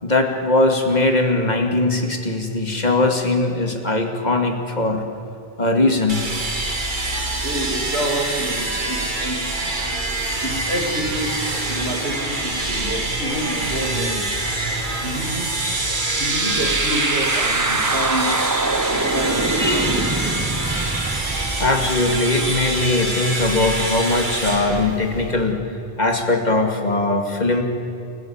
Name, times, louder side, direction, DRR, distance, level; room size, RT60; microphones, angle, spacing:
voice 1, 0.0-5.0 5.6-6.2 21.6-25.6 26.0-27.6, left 2 dB, 45° left, 3 dB, 2.7 m, -20 dB
sound 1, 6.1-25.5, right 2 dB, 50° right, 2.4 m, -25 dB
voice 2, 7.4-9.7 10.4-14.3 15.0-18.5 18.9-20.4, right 1 dB, 85° right, 2 dB, 3.5 m, -28 dB
sound 2, 14.8-22.0, right 3 dB, 20° right, 0.8 m, -25 dB
28.5 x 14.5 x 8.9 m, 2.7 s
omnidirectional pair, 1.0 m